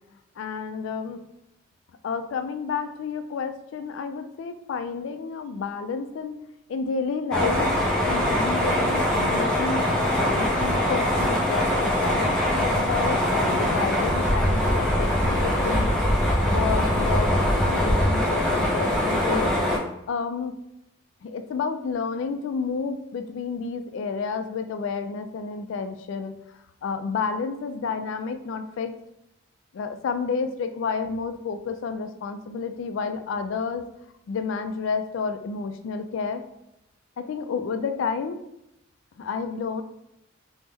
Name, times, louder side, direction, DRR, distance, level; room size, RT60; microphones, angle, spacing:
voice 1, 0.4-1.2 2.0-6.4 6.7-9.8 10.2-15.9 16.4-17.3 17.6-19.5 20.1-20.5 21.2-26.3 26.8-28.9 29.7-33.8 34.3-36.4 37.2-38.4 39.2-39.8, left 5 dB, 70° left, 8 dB, 0.3 m, -30 dB
sound 1, 7.3-19.8, left 1 dB, 5° left, 0.4 m, -22 dB
3.1 x 2.1 x 3.4 m, 0.84 s
head